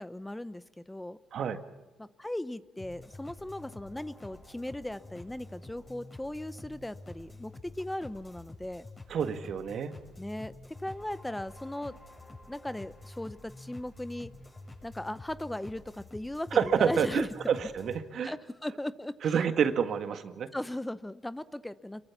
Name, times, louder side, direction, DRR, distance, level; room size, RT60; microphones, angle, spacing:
voice 1, 0.0-1.2 2.0-8.9 10.2-12.0 12.5-14.3 14.8-17.3 18.2-19.2 20.5-22.0, left 1 dB, 10° left, 15 dB, 0.7 m, -38 dB
sound 1, 2.8-18.0, left 2 dB, 25° left, 7.0 m, -48 dB
voice 2, 9.1-10.0 16.5-18.3 19.2-20.5, right 7 dB, 65° right, 9 dB, 1.8 m, -28 dB
27.0 x 22.5 x 7.3 m, 1.2 s
cardioid pair, 90°, 0 cm